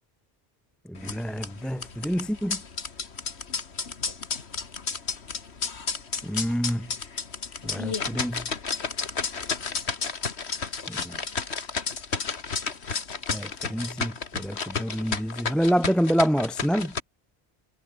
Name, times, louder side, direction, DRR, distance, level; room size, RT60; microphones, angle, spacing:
voice 1, 0.9-2.6 6.2-6.9 7.6-8.5 10.9-11.2 13.3-16.9, equal, ahead, 0.6 m, -27 dB
sound 1, 1.0-17.0, left 5 dB, 85° left, 2.0 m, -32 dB
omnidirectional pair, 1.1 m